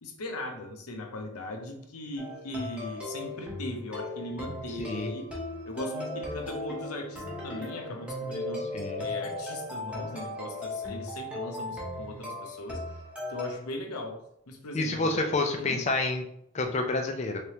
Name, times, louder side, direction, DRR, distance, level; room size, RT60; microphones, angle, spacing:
voice 1, 0.0-5.3 5.7-8.7 9.0-12.8 13.3-14.2 14.5-15.8, left 1 dB, 90° left, 4 dB, 0.7 m, -39 dB
sound 1, 2.2-13.5, left 1 dB, 5° right, 0.8 m, -37 dB
voice 2, 4.8-5.1 8.7-9.0 14.7-16.2 16.5-17.4, left 2 dB, 30° left, 4 dB, 0.4 m, -28 dB
3.6 x 3.4 x 2.9 m, 0.76 s
head